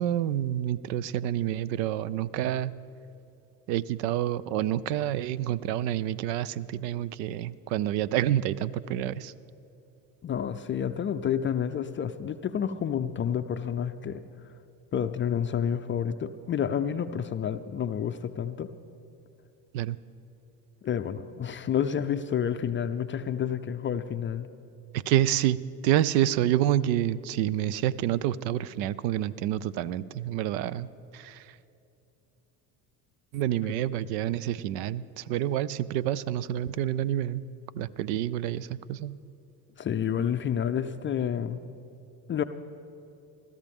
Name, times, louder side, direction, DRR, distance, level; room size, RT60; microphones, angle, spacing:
voice 1, 0.0-2.7 3.7-9.3 19.7-20.0 25.1-25.6 25.8-30.9 31.1-31.4 33.3-37.4 37.7-39.1, right 12 dB, 80° right, 19 dB, 0.6 m, -28 dB
voice 2, 10.2-14.2 14.9-18.7 20.8-24.5 39.8-41.6 42.3-42.4, left 8 dB, 25° left, 9 dB, 0.4 m, -29 dB
21.0 x 13.5 x 3.6 m, 2.8 s
hypercardioid pair, 80°, 49 cm